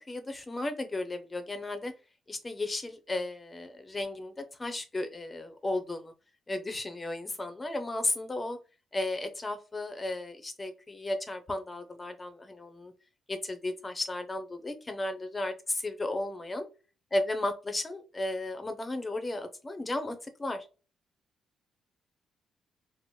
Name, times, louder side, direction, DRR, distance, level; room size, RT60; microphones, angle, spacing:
voice 1, 0.1-1.9 2.3-6.1 6.5-8.6 8.9-12.9 13.3-16.7 17.1-20.6, left 2 dB, 20° left, 9 dB, 0.6 m, -34 dB
3.0 x 2.0 x 4.1 m, 0.33 s
cardioid pair, 135°, 0 cm